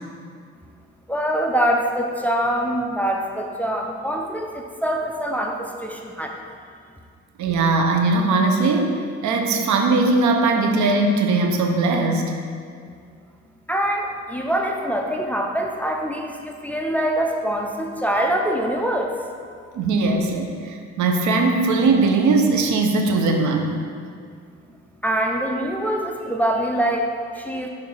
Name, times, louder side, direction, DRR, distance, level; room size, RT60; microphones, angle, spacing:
voice 1, 1.1-6.4 13.7-19.1 25.0-27.7, right 1 dB, 5° left, 1 dB, 0.5 m, -24 dB
voice 2, 7.4-12.3 19.8-23.8, right 3 dB, 70° right, 4 dB, 0.8 m, -20 dB
6.4 x 3.5 x 5.4 m, 2.2 s
cardioid pair, 90°, 30 cm